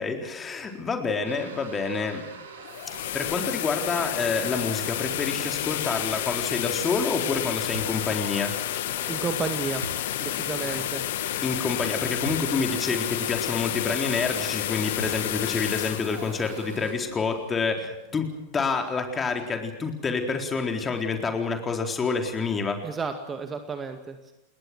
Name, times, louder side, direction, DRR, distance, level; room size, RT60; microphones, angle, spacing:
voice 1, 0.0-2.2 3.1-8.5 10.6-10.8 11.4-22.8, left 4 dB, 20° left, 4 dB, 4.0 m, -28 dB
sound 1, 1.2-16.9, right 5 dB, 65° right, 4.7 m, -44 dB
sound 2, 2.5-17.5, left 14 dB, 55° left, 1.0 m, -31 dB
sound 3, 7.7-8.1 9.8-10.1 12.2-12.5 13.2-13.3 15.0-15.5, right 2 dB, 85° right, 1.5 m, -37 dB
voice 2, 9.1-9.8 10.2-11.0 22.8-24.3, right 5 dB, 20° right, 7 dB, 2.1 m, -32 dB
29.5 x 21.0 x 6.2 m, 0.93 s
figure-of-eight pair, 90°, 0 cm